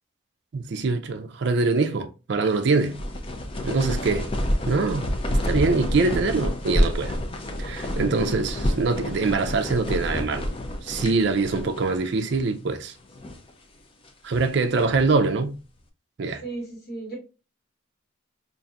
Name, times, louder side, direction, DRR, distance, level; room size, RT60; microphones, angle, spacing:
voice 1, 0.5-3.0 3.6-4.3 4.7-7.2 7.6-10.5 10.8-12.9 14.2-15.6 16.2-16.4, right 3 dB, 55° right, 0.4 m, -24 dB
sound 1, 2.5-12.0 12.3-12.4 13.0-13.5 14.0-15.1, equal, 25° left, 0.4 m, -28 dB
voice 2, 16.4-17.2, right 3 dB, 50° left, 1.6 m, -35 dB
5.3 x 2.6 x 2.4 m
head